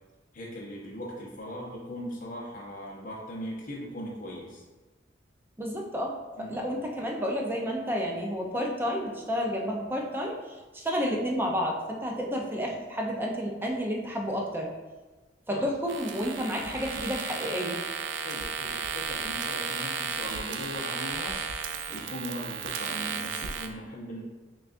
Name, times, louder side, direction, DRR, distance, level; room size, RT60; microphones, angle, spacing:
voice 1, 0.3-4.6 6.4-6.7 15.5-15.7 18.2-21.4 21.9-24.2, equal, 45° left, -4 dB, 0.7 m, -39 dB
voice 2, 5.6-14.7 15.5-17.8, equal, 10° right, -1 dB, 0.5 m, -31 dB
sound 1, 15.9-23.7, right 6 dB, 80° right, 0.4 m, -34 dB
6.1 x 2.3 x 2.5 m, 1.2 s
head